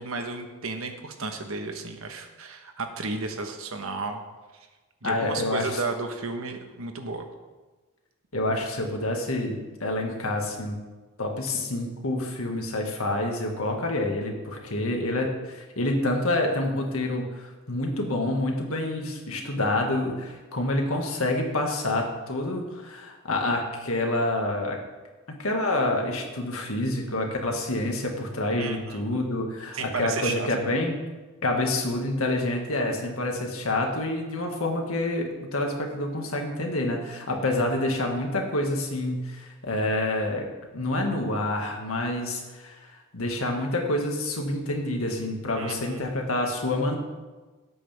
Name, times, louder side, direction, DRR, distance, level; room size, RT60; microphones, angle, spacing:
voice 1, 0.0-4.2 4.5-4.7 5.0-7.2 28.6-29.1 29.7-30.5 45.5-46.1, right 3 dB, 70° right, 5 dB, 1.3 m, -33 dB
voice 2, 5.0-5.8 8.3-10.8 11.2-24.8 25.3-31.0 31.4-40.5 40.7-47.0, left 1 dB, 75° left, 1 dB, 2.0 m, -28 dB
17.5 x 8.5 x 3.6 m, 1.2 s
head